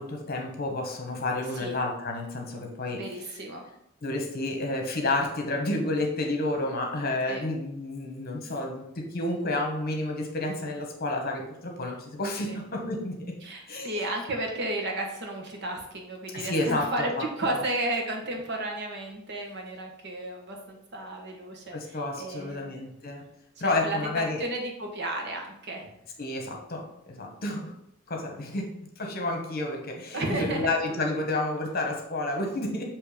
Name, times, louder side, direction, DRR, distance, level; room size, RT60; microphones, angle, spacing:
voice 1, 0.0-3.0 4.0-13.1 13.7-13.9 16.3-17.6 21.7-23.2 23.6-24.4 26.2-27.7 28.1-28.7 29.0-32.8, left 2 dB, 50° left, 2 dB, 1.2 m, -30 dB
voice 2, 2.9-3.6 7.3-7.4 12.5-12.6 13.4-17.1 17.4-22.8 23.6-25.9 30.1-31.0, right 1 dB, 55° right, 2 dB, 1.2 m, -33 dB
6.9 x 3.0 x 5.0 m, 0.76 s
head